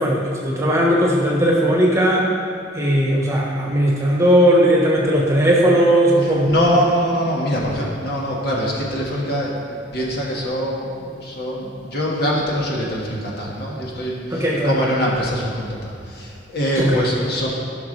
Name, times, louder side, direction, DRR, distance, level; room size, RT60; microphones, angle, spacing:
voice 1, 0.0-2.3 2.7-6.5 14.3-14.8 16.8-17.1, right 1 dB, 15° right, -3 dB, 1.3 m, -17 dB
voice 2, 6.4-9.5 9.9-17.5, equal, 60° left, -4 dB, 1.7 m, -23 dB
15.5 x 6.0 x 3.3 m, 2.3 s
head